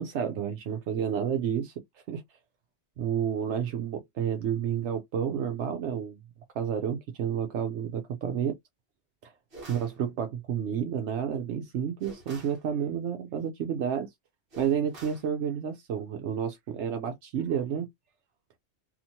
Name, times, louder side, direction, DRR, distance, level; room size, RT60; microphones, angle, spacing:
voice 1, 0.0-1.7 2.1-2.2 3.0-6.2 6.5-8.5 9.2-9.3 9.7-14.1 14.6-17.9, right 8 dB, 80° right, 0.9 m, -30 dB
sound 1, 9.5-10.0 12.0-12.6 14.5-15.3, right 2 dB, 55° right, 1.2 m, -47 dB
2.8 x 2.4 x 2.7 m
omnidirectional pair, 1.2 m